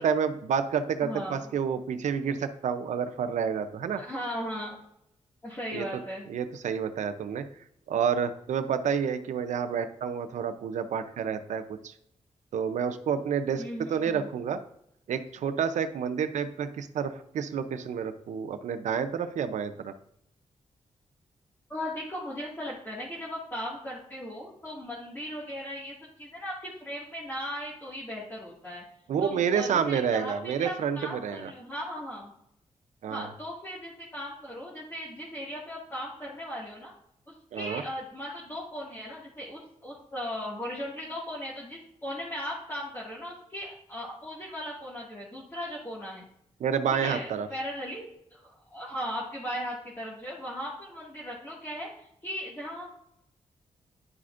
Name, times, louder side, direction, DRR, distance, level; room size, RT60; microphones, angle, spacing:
voice 1, 0.0-4.0 5.7-5.8 6.3-7.4 7.9-11.9 12.5-14.6 15.1-19.9 29.1-31.5 33.0-33.3 37.5-37.8 46.6-47.5, right 7 dB, 90° right, 9 dB, 0.6 m, -29 dB
voice 2, 1.0-1.5 4.0-4.8 5.4-6.2 13.6-14.3 21.7-28.8 29.2-32.3 33.1-36.9 37.3-46.2 47.0-52.9, equal, 20° left, -7 dB, 2.0 m, -37 dB
11.0 x 4.2 x 2.5 m, 0.75 s
cardioid pair, 80°, 12 cm